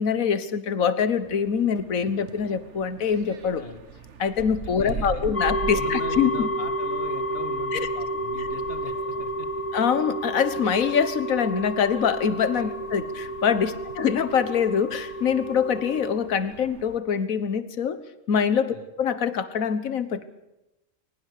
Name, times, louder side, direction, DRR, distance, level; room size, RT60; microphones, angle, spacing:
voice 1, 0.0-3.6 4.2-6.5 7.7-7.9 8.4-8.5 9.7-18.0 18.3-20.3, left 7 dB, 80° left, 14 dB, 1.6 m, -24 dB
sound 1, 1.2-17.0, right 5 dB, 60° right, 1.4 m, -42 dB
voice 2, 4.6-5.3 5.7-9.5 12.6-12.7 18.7-18.9, left 2 dB, 45° left, 8 dB, 2.1 m, -40 dB
sound 2, 5.3-16.1, right 1 dB, 25° left, 1.7 m, -31 dB
21.5 x 20.0 x 6.7 m, 0.94 s
omnidirectional pair, 1.4 m